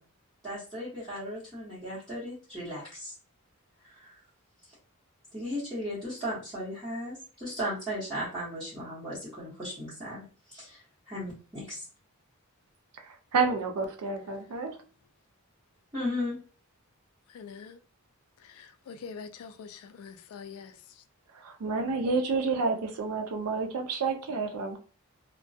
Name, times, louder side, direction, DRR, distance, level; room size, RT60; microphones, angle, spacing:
voice 1, 0.4-3.1 3.8-4.1 5.3-10.8 11.1-11.8 15.9-16.4, equal, 15° right, 1.0 m, -36 dB
voice 2, 13.3-14.7 21.4-24.8, right 4 dB, 90° right, 0.5 m, -29 dB
voice 3, 17.3-17.8 18.4-20.7, left 6 dB, 75° left, 0.3 m, -44 dB
2.2 x 2.1 x 2.6 m
head